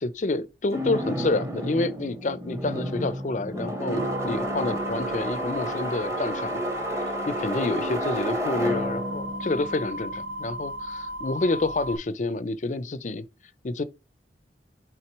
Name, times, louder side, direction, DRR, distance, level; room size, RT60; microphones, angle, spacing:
voice 1, 0.0-6.6 7.0-13.3 13.6-13.8, left 2 dB, 45° left, 0.5 m, -28 dB
sound 1, 0.7-10.7, equal, 15° right, 0.9 m, -31 dB
sound 2, 4.0-12.0, equal, 80° right, 0.6 m, -35 dB
5.9 x 3.6 x 4.5 m
head